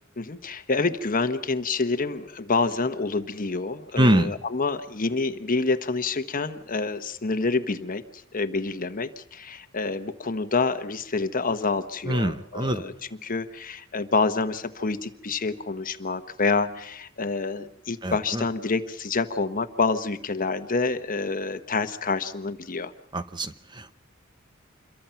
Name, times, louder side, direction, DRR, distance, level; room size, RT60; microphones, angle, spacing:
voice 1, 0.2-8.0 8.3-12.9 13.2-22.9, left 3 dB, 40° left, 9 dB, 1.2 m, -27 dB
voice 2, 4.0-4.3 12.1-12.8 18.0-18.4 23.1-23.9, right 1 dB, 20° right, 11 dB, 0.8 m, -24 dB
27.5 x 23.0 x 5.8 m, 0.75 s
head